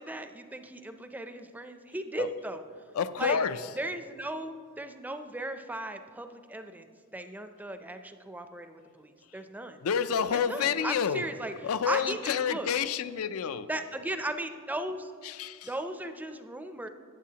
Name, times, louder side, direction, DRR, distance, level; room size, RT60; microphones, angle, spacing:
voice 1, 0.0-2.6 3.2-3.4 3.8-9.8 10.3-11.5 11.9-12.7 13.7-15.1 15.6-16.9, right 1 dB, 10° right, 8 dB, 0.4 m, -37 dB
voice 2, 2.9-3.6 9.8-11.2 11.6-13.7 15.2-15.7, left 7 dB, 80° left, 13 dB, 0.4 m, -29 dB
14.5 x 9.0 x 2.8 m, 2.1 s
head